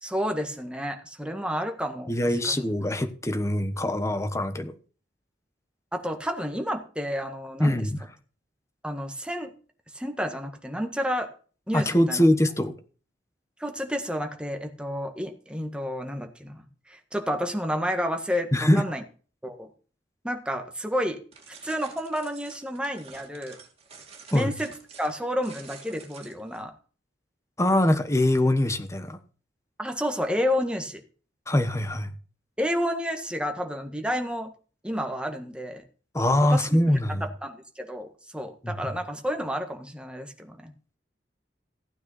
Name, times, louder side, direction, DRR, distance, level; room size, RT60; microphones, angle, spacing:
voice 1, 0.0-2.6 5.9-7.9 8.8-9.5 9.9-11.3 11.7-12.2 13.6-19.0 19.4-19.7 20.2-21.2 21.6-23.6 24.3-24.7 25.0-26.7 29.8-31.0 32.6-34.5 34.8-35.8 36.5-40.7, equal, 5° right, 1.6 m, -30 dB
voice 2, 2.1-4.7 7.6-8.0 11.7-12.8 18.5-18.8 24.3-24.5 27.6-29.2 31.5-32.1 36.1-37.2 38.6-38.9, left 1 dB, 15° left, 1.2 m, -23 dB
sound 1, 21.3-26.6, right 5 dB, 35° right, 2.9 m, -48 dB
15.0 x 9.3 x 4.1 m
head